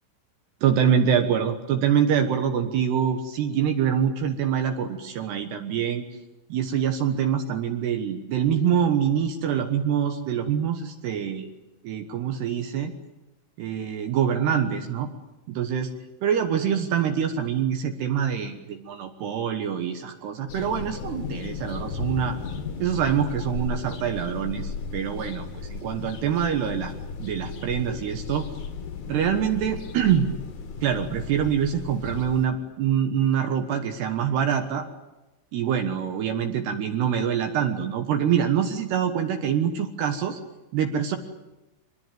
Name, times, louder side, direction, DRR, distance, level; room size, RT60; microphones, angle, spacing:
voice 1, 0.6-6.0 6.5-11.5 11.8-12.9 13.6-15.1 15.5-15.9 16.2-22.4 22.8-26.9 27.2-28.5 29.1-30.3 30.8-34.8 35.5-40.4 40.7-41.2, right 8 dB, 65° right, 6 dB, 3.1 m, -25 dB
sound 1, 20.5-32.5, left 5 dB, 50° left, 2.8 m, -35 dB
24.5 x 20.5 x 9.4 m, 1.0 s
omnidirectional pair, 5.7 m